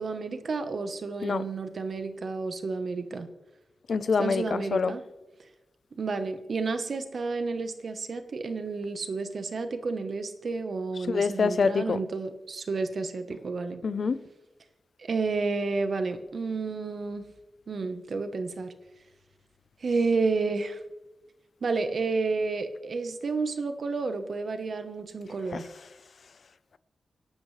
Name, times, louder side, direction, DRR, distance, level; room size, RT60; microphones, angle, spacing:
voice 1, 0.0-3.3 4.2-5.0 6.0-13.8 15.0-17.2 17.7-18.7 19.8-20.8 21.6-25.7, right 4 dB, 60° right, 1.1 m, -31 dB
voice 2, 3.9-5.0 11.1-12.0 13.8-14.2 25.5-25.6, left 5 dB, 60° left, 0.7 m, -26 dB
29.0 x 12.0 x 3.3 m
wide cardioid pair, 135°, 0 cm